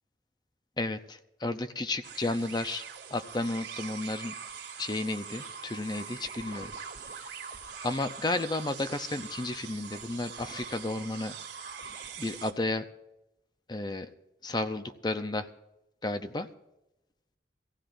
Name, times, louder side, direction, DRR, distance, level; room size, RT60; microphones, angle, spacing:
voice 1, 0.8-2.8 3.1-4.4 4.8-6.7 7.2-7.3 7.8-11.4 12.2-12.8 13.7-14.1 14.4-15.5 16.0-16.5, left 2 dB, 25° left, 9 dB, 0.6 m, -32 dB
sound 1, 2.0-12.5, right 6 dB, 75° right, 1.9 m, -43 dB
23.5 x 15.5 x 2.6 m, 0.93 s
head